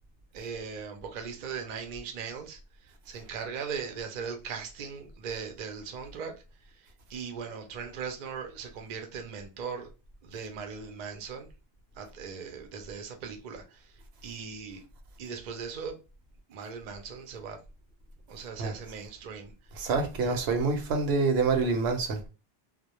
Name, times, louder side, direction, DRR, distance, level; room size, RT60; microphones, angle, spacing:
voice 1, 0.3-6.3 6.6-9.9 10.2-11.5 12.0-14.8 15.2-16.0 16.5-17.6 18.3-19.7 20.2-20.4, right 6 dB, 55° right, 0.5 m, -39 dB
voice 2, 19.8-22.3, right 4 dB, 85° right, 0.8 m, -26 dB
2.1 x 2.0 x 2.8 m
omnidirectional pair, 1.0 m